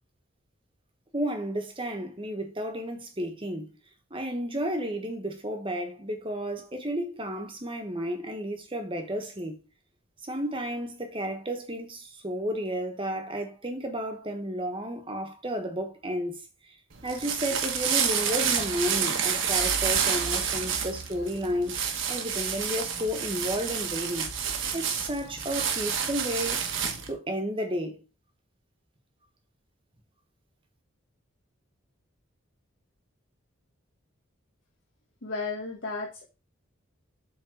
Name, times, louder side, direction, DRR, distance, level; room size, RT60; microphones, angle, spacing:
voice 1, 1.1-3.7 4.1-9.6 10.2-16.4 17.0-21.8 22.1-24.3 24.7-26.6 27.1-28.0, equal, 25° right, 1.3 m, -32 dB
sound 1, 16.9-27.1, right 7 dB, 65° right, 1.2 m, -29 dB
voice 2, 35.2-36.3, left 3 dB, 70° left, 1.4 m, -34 dB
7.8 x 3.8 x 4.9 m
head